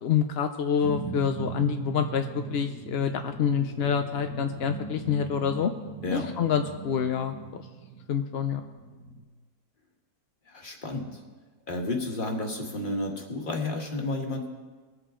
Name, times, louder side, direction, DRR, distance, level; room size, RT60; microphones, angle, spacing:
voice 1, 0.0-5.7 6.1-7.3 8.1-8.6, left 7 dB, 65° left, 6 dB, 0.6 m, -27 dB
sound 1, 0.8-9.2, right 4 dB, 60° right, 1.7 m, -39 dB
voice 2, 10.5-11.2 11.7-14.5, left 2 dB, 30° left, 2 dB, 1.7 m, -31 dB
22.0 x 8.1 x 3.7 m, 1.4 s
omnidirectional pair, 1.7 m